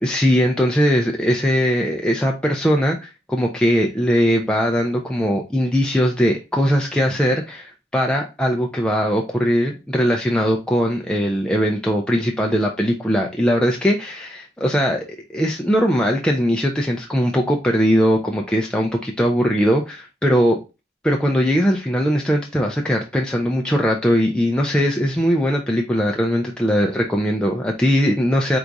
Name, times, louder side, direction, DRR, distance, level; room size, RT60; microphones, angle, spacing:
voice 1, 0.0-20.6 21.0-28.6, equal, 5° left, 0.4 m, -20 dB
3.9 x 2.4 x 4.6 m
head